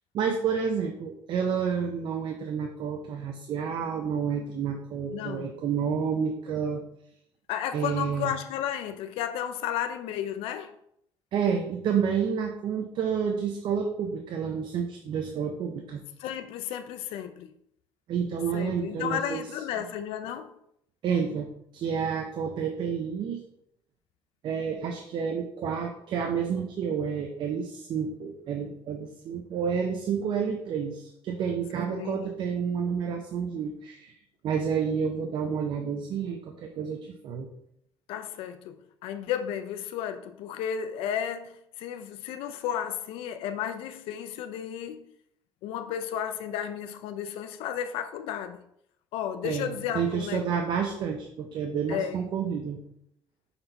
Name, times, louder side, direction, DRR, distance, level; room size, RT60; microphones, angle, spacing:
voice 1, 0.1-6.8 7.7-8.3 11.3-16.0 18.1-19.4 21.0-21.5 21.7-23.4 24.4-34.1 34.4-37.5 49.4-52.8, right 6 dB, 60° right, 0.7 m, -29 dB
voice 2, 5.1-5.5 7.5-10.7 16.2-17.5 18.5-20.5 31.9-32.2 38.1-38.8 39.0-45.0 45.6-48.6 49.1-50.5 51.9-52.2, left 9 dB, 90° left, 0.5 m, -33 dB
5.7 x 4.3 x 3.9 m
cardioid pair, 115°, 9 cm